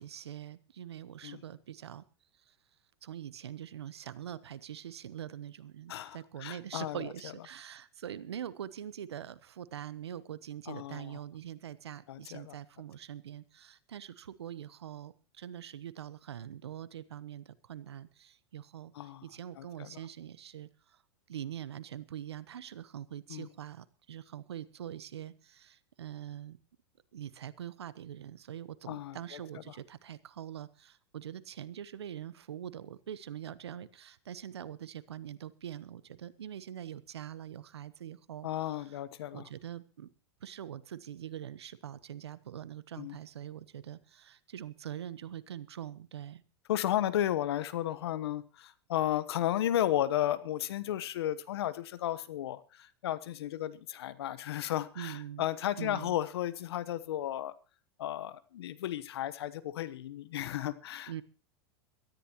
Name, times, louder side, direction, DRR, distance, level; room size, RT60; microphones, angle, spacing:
voice 1, 0.0-2.0 2.5-2.6 3.0-21.0 21.3-26.6 27.1-38.5 38.9-39.0 39.3-40.1 40.4-46.4 54.9-55.5 55.8-56.2 61.1-61.2, right 10 dB, 80° right, 17 dB, 1.0 m, -44 dB
voice 2, 5.9-7.1 10.7-11.2 12.1-12.6 18.9-19.2 19.6-20.0 23.3-23.5 28.9-29.4 38.4-39.5 43.0-43.2 46.7-57.5 58.0-61.2, left 12 dB, 70° left, 15 dB, 1.1 m, -34 dB
22.5 x 13.5 x 3.0 m, 0.33 s
hypercardioid pair, 100°, 14 cm